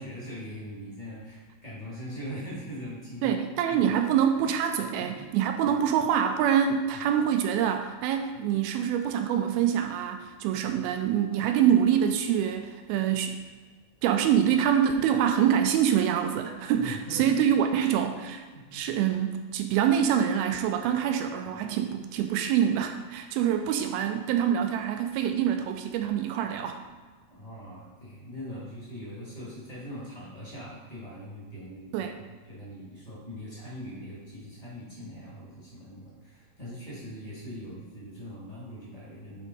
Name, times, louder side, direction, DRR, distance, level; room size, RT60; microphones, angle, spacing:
voice 1, 0.0-3.4 3.7-4.0 4.9-5.1 5.6-5.8 16.7-17.3 18.5-18.8 21.4-21.5 27.3-32.1 32.5-39.5, equal, 25° left, -8 dB, 0.8 m, -41 dB
voice 2, 3.2-13.4 14.0-18.4 18.7-26.8 31.9-32.2, right 9 dB, 85° right, 6 dB, 2.2 m, -25 dB
9.1 x 3.7 x 4.8 m, 1.4 s
omnidirectional pair, 4.8 m